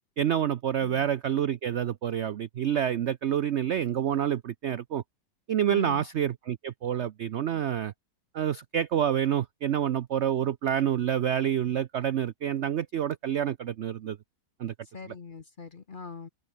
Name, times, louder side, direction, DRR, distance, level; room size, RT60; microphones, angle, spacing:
voice 1, 0.2-5.0 5.5-7.9 8.3-14.2 14.6-14.7 15.1-15.2, right 9 dB, 75° right, 0.6 m, -28 dB
voice 2, 5.7-6.0 14.8-16.3, left 5 dB, 35° left, 0.9 m, -41 dB
open air
omnidirectional pair, 1.9 m